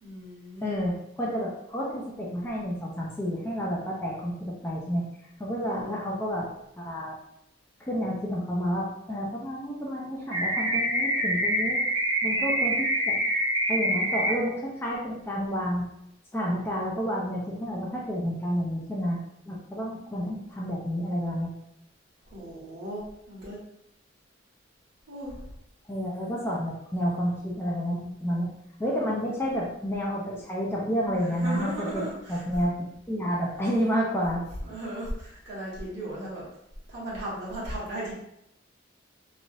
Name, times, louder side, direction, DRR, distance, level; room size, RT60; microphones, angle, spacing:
voice 1, 0.0-0.7 5.6-6.2 22.3-23.6 25.1-25.4 28.8-29.3 31.4-32.4 34.6-36.4 36.9-38.1, right 1 dB, 60° right, -6 dB, 1.3 m, -37 dB
voice 2, 0.6-5.1 5.4-6.5 6.8-7.2 7.8-11.8 12.2-13.2 13.7-15.9 16.3-19.2 19.5-21.5 25.9-28.5 28.8-32.7 33.1-34.4, equal, 10° left, -4 dB, 0.4 m, -30 dB
sound 1, 10.3-14.3, right 1 dB, 85° right, 1.3 m, -26 dB
3.1 x 2.4 x 2.6 m, 0.78 s
head